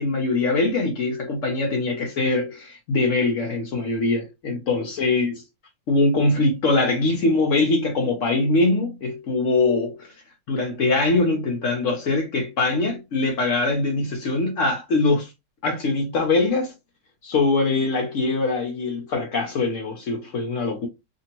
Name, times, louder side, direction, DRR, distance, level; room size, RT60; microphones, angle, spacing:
voice 1, 0.0-5.4 5.9-10.1 10.5-15.3 15.6-16.7 17.2-20.9, left 3 dB, 65° left, 1.0 m, -22 dB
2.7 x 2.6 x 2.8 m
omnidirectional pair, 1.5 m